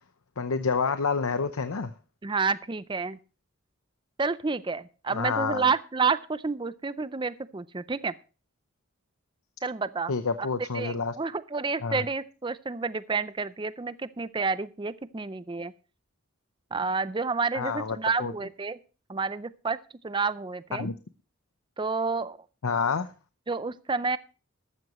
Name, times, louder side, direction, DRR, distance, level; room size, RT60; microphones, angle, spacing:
voice 1, 0.4-1.9 5.1-5.7 10.1-11.2 11.8-12.1 17.5-18.3 20.7-20.9 22.6-23.1, left 5 dB, 85° left, 10 dB, 0.7 m, -28 dB
voice 2, 2.2-3.2 4.2-8.1 9.6-10.1 10.7-15.7 16.7-18.8 19.1-19.8 20.0-20.9 21.8-22.4 23.5-24.2, right 4 dB, 20° right, 15 dB, 0.4 m, -29 dB
14.0 x 12.0 x 3.0 m, 0.35 s
head